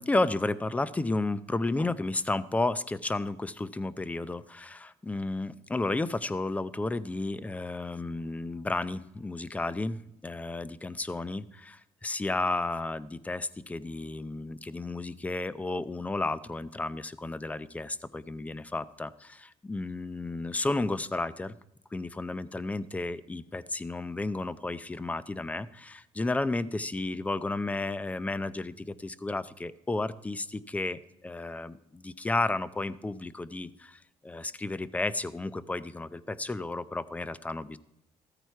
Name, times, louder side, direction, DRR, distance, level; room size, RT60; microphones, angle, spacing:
voice 1, 0.0-21.5 21.9-37.8, left 2 dB, 10° left, 17 dB, 0.5 m, -32 dB
14.5 x 13.5 x 4.6 m, 0.80 s
cardioid pair, 135°, 12 cm